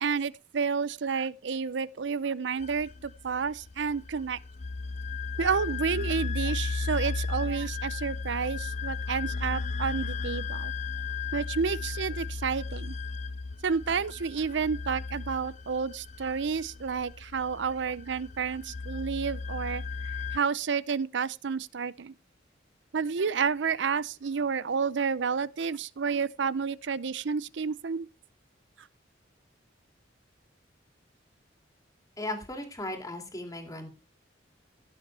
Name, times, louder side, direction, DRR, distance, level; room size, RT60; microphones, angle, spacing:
voice 1, 0.0-4.4 5.4-10.7 11.3-12.9 13.6-19.8 20.3-22.1 22.9-28.1, right 5 dB, 65° right, 0.5 m, -30 dB
sound 1, 2.6-20.4, left 4 dB, 40° left, 0.5 m, -35 dB
voice 2, 32.2-33.9, left 1 dB, 20° left, 2.6 m, -36 dB
16.5 x 7.2 x 3.3 m
head